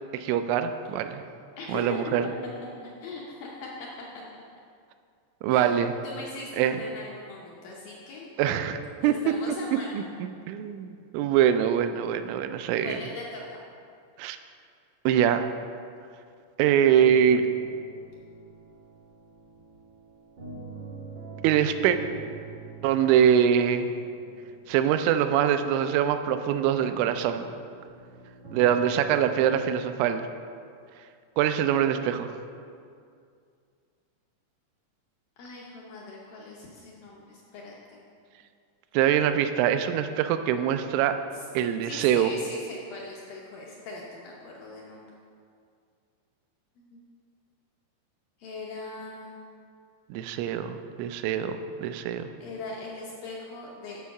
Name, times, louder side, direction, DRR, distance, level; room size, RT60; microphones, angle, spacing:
voice 1, 0.1-1.2 1.7-2.2 5.4-5.9 6.6-6.8 8.4-9.3 9.9-13.0 14.2-14.4 15.1-15.4 16.6-17.4 21.4-22.0 22.8-23.9 24.7-27.5 28.5-30.3 31.4-32.4 38.9-41.2 41.5-42.3 50.1-52.3, right 9 dB, 90° right, 9 dB, 2.9 m, -24 dB
voice 2, 1.6-2.0 2.8-3.9 5.5-8.3 9.0-10.1 12.8-13.6 35.4-38.0 41.3-41.5 41.8-45.1 46.8-47.1 48.4-49.4 52.4-54.0, left 3 dB, 75° left, -3 dB, 2.1 m, -40 dB
sound 1, 16.9-29.8, right 4 dB, 55° right, 1.1 m, -46 dB
8.3 x 5.5 x 7.0 m, 2.3 s
omnidirectional pair, 5.2 m